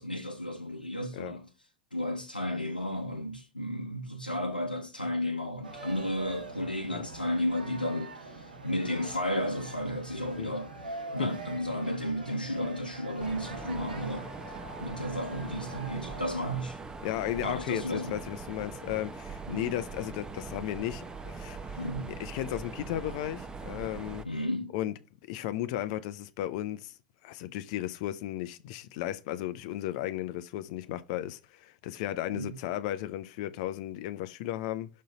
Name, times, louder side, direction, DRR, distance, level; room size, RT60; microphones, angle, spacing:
voice 1, 0.0-1.5 1.9-14.3 14.8-16.8 17.4-18.2 19.5-19.8 21.8-22.1 24.2-24.7 32.3-32.6, left 1 dB, 90° left, 0.9 m, -33 dB
sound 1, 5.6-16.3, right 2 dB, 80° right, 1.5 m, -44 dB
Mechanisms, 13.2-24.2, right 4 dB, 15° right, 0.8 m, -42 dB
voice 2, 17.0-21.8 22.2-24.3 24.7-24.9 25.3-26.9 27.2-34.9, left 13 dB, 50° left, 0.5 m, -35 dB
6.3 x 3.8 x 4.0 m
figure-of-eight pair, 85°, 5 cm